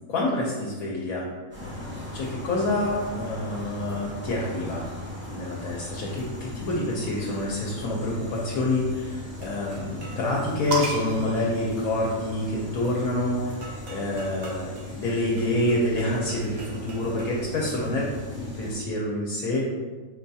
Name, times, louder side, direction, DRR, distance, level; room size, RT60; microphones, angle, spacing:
voice 1, 0.1-4.9 5.3-19.7, left 1 dB, 80° left, -3 dB, 1.0 m, -27 dB
sound 1, 1.5-18.8, left 1 dB, 10° right, 0.6 m, -38 dB
sound 2, 9.4-10.3 13.6-17.5, right 1 dB, 85° right, 1.3 m, -45 dB
sound 3, 10.7-12.5 13.6-15.3, right 2 dB, 60° right, 0.7 m, -35 dB
4.2 x 2.3 x 2.6 m, 1.4 s
omnidirectional pair, 1.5 m